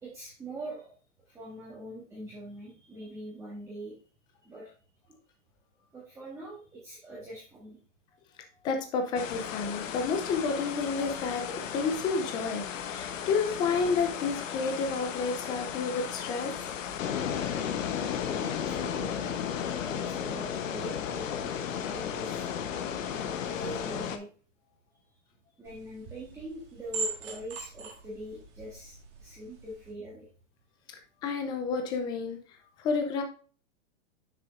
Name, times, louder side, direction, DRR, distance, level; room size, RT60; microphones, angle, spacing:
voice 1, 0.0-0.9 1.3-4.0 4.4-4.7 5.9-7.8 10.2-10.5 13.0-13.1 13.7-13.9 14.3-14.4 17.6-19.4 19.9-22.5 23.1-24.3 25.6-30.3, equal, 5° right, -7 dB, 1.5 m, -43 dB
voice 2, 8.6-11.4 11.7-16.5 31.2-32.4 32.8-33.2, left 4 dB, 10° left, 5 dB, 0.5 m, -30 dB
sound 1, 9.2-24.2, left 8 dB, 85° left, 1.0 m, -34 dB
sound 2, 25.6-29.9, right 4 dB, 25° right, 1.5 m, -41 dB
7.4 x 6.4 x 2.5 m, 0.40 s
supercardioid pair, 165°, 37 cm